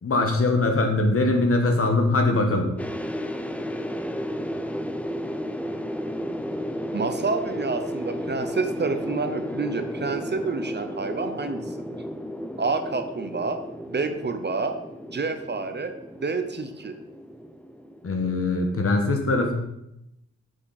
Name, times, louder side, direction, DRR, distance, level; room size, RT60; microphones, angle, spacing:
voice 1, 0.0-2.7 18.0-19.5, left 2 dB, 50° left, 4 dB, 1.3 m, -22 dB
sound 1, 2.8-18.9, equal, 5° left, 0.4 m, -33 dB
voice 2, 6.9-11.6 12.6-13.6 13.9-14.7 15.1-15.9 16.2-16.9, right 4 dB, 35° right, 7 dB, 0.6 m, -28 dB
7.2 x 6.9 x 4.1 m, 0.83 s
wide cardioid pair, 135°, 30 cm